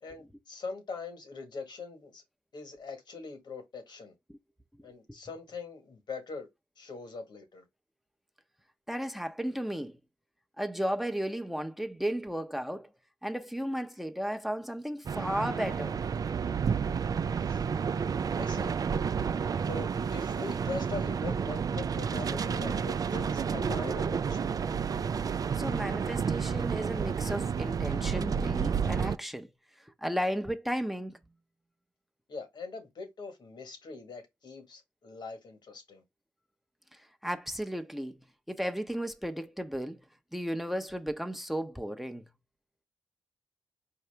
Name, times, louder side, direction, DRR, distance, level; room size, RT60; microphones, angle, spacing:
voice 1, 0.0-2.2 2.5-4.1 4.8-6.5 6.8-7.6 17.3-17.6 18.4-18.8 19.6-24.6 32.3-36.0, left 4 dB, 65° left, 1.5 m, -42 dB
voice 2, 8.9-10.0 10.6-12.9 13.2-16.0 25.5-29.5 29.8-31.2 36.9-38.2 38.5-40.0 40.3-42.2, equal, 5° right, 0.7 m, -34 dB
sound 1, 15.1-29.2, right 6 dB, 50° right, 0.3 m, -30 dB
4.7 x 2.8 x 3.4 m
supercardioid pair, 50°, 8 cm